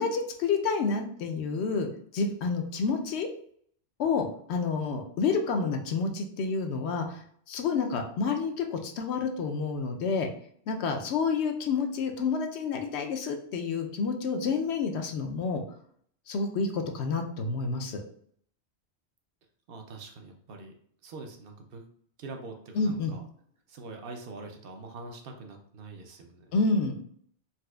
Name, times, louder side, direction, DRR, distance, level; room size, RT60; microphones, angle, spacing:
voice 1, 0.0-3.3 4.0-10.3 10.7-15.6 16.3-18.0 22.7-23.1 26.5-27.0, left 4 dB, 80° left, 4 dB, 0.8 m, -29 dB
voice 2, 19.7-20.7 21.0-21.8 22.2-23.2 23.7-26.5, right 3 dB, 65° right, 3 dB, 0.7 m, -44 dB
4.2 x 2.3 x 2.2 m, 0.63 s
omnidirectional pair, 1.1 m